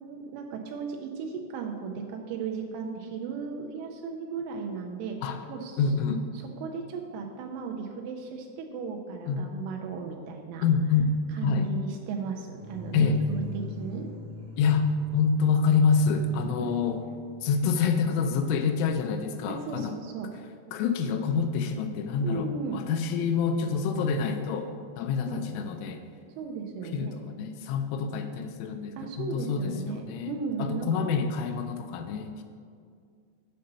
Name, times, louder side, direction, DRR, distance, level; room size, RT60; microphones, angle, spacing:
voice 1, 0.0-5.2 5.5-10.6 11.3-14.1 16.6-16.8 19.5-20.3 22.2-22.8 25.2-25.4 26.4-27.2 29.0-31.0, right 5 dB, 85° right, 2 dB, 3.0 m, -36 dB
voice 2, 5.8-6.2 9.3-9.4 10.6-11.2 11.4-11.7 12.9-13.2 14.6-17.0 17.4-20.0 20.7-26.0 26.9-32.4, left 5 dB, 85° left, 7 dB, 2.8 m, -27 dB
sound 1, 12.6-17.9, left 3 dB, 60° right, 1.6 m, -42 dB
7.8 x 5.3 x 6.7 m, 2.2 s
omnidirectional pair, 5.9 m